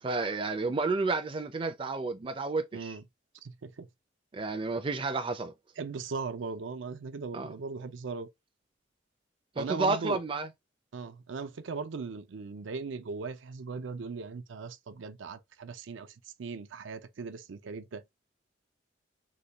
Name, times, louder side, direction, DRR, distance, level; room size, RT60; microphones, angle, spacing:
voice 1, 0.0-3.0 4.3-5.5 7.3-7.5 9.6-10.5, right 3 dB, 25° right, 0.4 m, -31 dB
voice 2, 2.7-3.0 3.4-3.9 5.8-8.3 9.6-10.2 10.9-16.1 16.4-18.0, right 4 dB, 80° right, 0.5 m, -38 dB
4.0 x 2.2 x 3.0 m
head